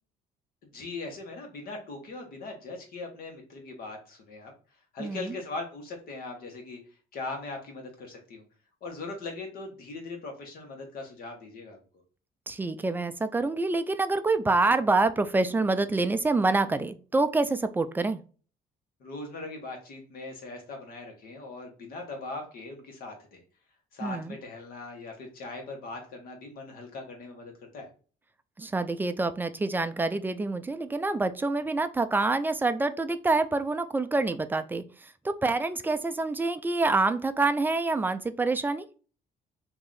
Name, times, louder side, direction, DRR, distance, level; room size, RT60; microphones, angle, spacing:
voice 1, 0.7-4.5 4.9-6.8 7.1-8.4 8.8-11.8 19.0-23.4 23.9-27.9, left 3 dB, 60° left, 2 dB, 1.5 m, -40 dB
voice 2, 5.0-5.4 12.5-18.2 24.0-24.4 28.6-38.8, right 3 dB, 10° right, 10 dB, 0.3 m, -27 dB
3.0 x 2.7 x 3.8 m, 0.39 s
cardioid pair, 110°, 17 cm